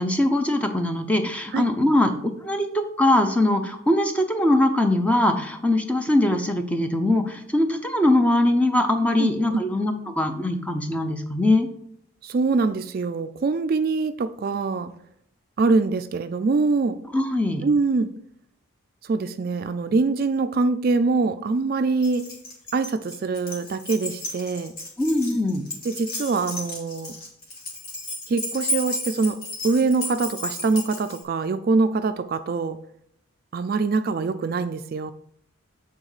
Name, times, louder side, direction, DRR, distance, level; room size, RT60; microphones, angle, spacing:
voice 1, 0.0-2.1 2.4-11.7 17.1-17.6 25.0-25.6, left 1 dB, 5° left, 6 dB, 0.6 m, -21 dB
voice 2, 9.2-9.6 12.2-14.9 15.6-17.0 17.6-18.1 19.0-22.3 22.7-24.7 25.8-27.1 28.3-29.4 29.6-32.8 33.5-35.1, right 3 dB, 45° right, 10 dB, 0.3 m, -24 dB
Keys jangling, 22.0-31.2, left 1 dB, 45° left, 2.0 m, -33 dB
8.7 x 3.9 x 4.9 m, 0.70 s
head